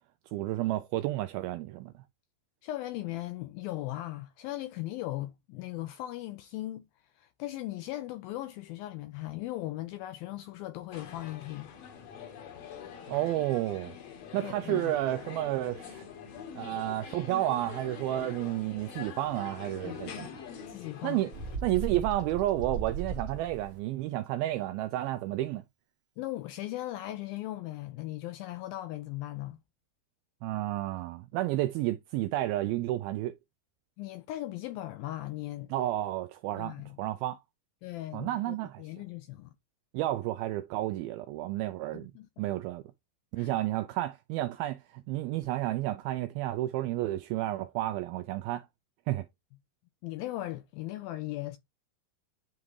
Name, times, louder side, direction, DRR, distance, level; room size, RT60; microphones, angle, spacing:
voice 1, 0.3-1.9 13.1-13.9 14.3-16.1 16.6-20.3 21.0-21.3 21.6-25.6 30.4-33.4 35.7-37.4 38.1-38.8 39.9-42.1 42.4-42.8 43.3-48.7 49.1-49.3, right 15 dB, 85° right, 2.1 m, -31 dB
voice 2, 2.6-6.9 7.2-11.7 14.3-14.9 19.8-21.2 26.2-29.6 34.0-35.7 36.6-37.0 37.8-39.5 41.9-42.3 43.4-43.5 50.0-51.6, left 16 dB, 85° left, 2.1 m, -38 dB
sound 1, 10.9-21.6, left 7 dB, 60° left, 1.7 m, -44 dB
Bird, 21.3-23.8, right 5 dB, 60° right, 1.4 m, -37 dB
10.5 x 3.6 x 3.2 m
omnidirectional pair, 4.7 m